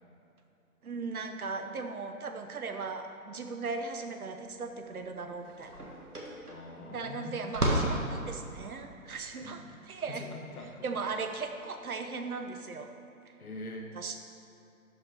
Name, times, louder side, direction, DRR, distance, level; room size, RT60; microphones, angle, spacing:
voice 1, 0.8-5.8 6.8-10.3 10.8-12.9 13.9-14.2, right 4 dB, 75° right, 6 dB, 1.1 m, -38 dB
sound 1, 4.6-4.7 5.0-11.5, right 1 dB, 90° right, 1.8 m, -35 dB
voice 2, 6.5-7.5 9.4-10.8 13.4-13.9, left 2 dB, 75° left, 2 dB, 1.6 m, -44 dB
12.0 x 5.8 x 4.5 m, 2.8 s
figure-of-eight pair, 135°, 44 cm